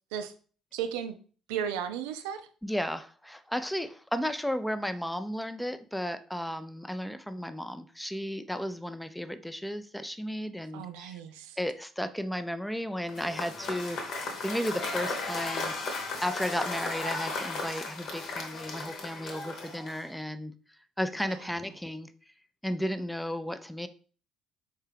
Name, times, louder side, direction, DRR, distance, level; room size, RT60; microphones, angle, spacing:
voice 1, 0.7-1.2 1.5-2.4 10.7-11.6 21.2-21.3, right 8 dB, 70° right, 9 dB, 0.4 m, -34 dB
voice 2, 2.6-11.2 11.6-15.7 16.2-20.5 21.0-22.1 22.6-23.9, equal, 5° left, 10 dB, 0.4 m, -34 dB
Cheering / Applause / Crowd, 13.1-20.2, left 3 dB, 55° left, 1.0 m, -35 dB
4.3 x 3.6 x 3.4 m, 0.41 s
figure-of-eight pair, 50°, 0 cm